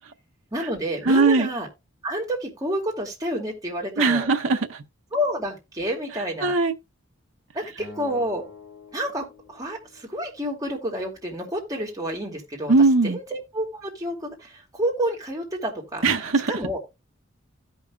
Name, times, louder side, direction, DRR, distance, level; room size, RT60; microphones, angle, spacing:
voice 1, 0.5-1.7 2.0-4.3 5.1-6.5 7.5-8.4 8.9-12.7 13.0-16.0 16.5-16.8, equal, 20° right, 2.5 m, -29 dB
voice 2, 1.1-1.5 4.0-4.8 6.4-6.7 12.7-13.2 16.0-16.5, right 3 dB, 75° right, 0.8 m, -19 dB
Acoustic guitar, 7.8-10.2, left 4 dB, 50° left, 5.3 m, -46 dB
16.5 x 5.5 x 2.3 m
head